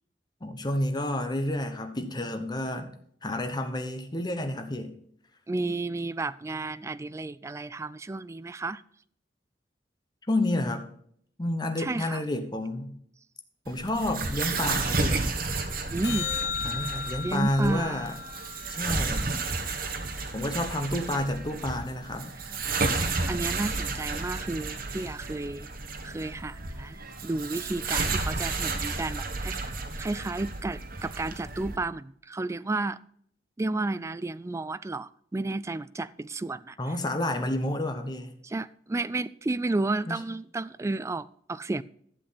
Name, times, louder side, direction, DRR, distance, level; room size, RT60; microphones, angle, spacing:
voice 1, 0.4-2.9 3.2-4.9 10.3-10.9 11.4-12.9 13.7-15.3 16.6-18.2 18.7-19.3 20.3-22.3 36.8-38.3 40.1-40.2, left 1 dB, 25° left, 1.1 m, -30 dB
voice 2, 5.5-8.8 11.8-12.2 15.9-16.3 17.2-18.1 22.5-22.6 23.3-25.7 26.0-33.0 33.6-36.8 38.4-41.8, right 2 dB, 15° right, 0.3 m, -32 dB
sound 1, 13.6-31.8, right 3 dB, 55° right, 1.4 m, -32 dB
sound 2, 16.0-20.5 27.1-27.2, left 6 dB, 65° left, 2.6 m, -37 dB
11.5 x 7.7 x 4.1 m
head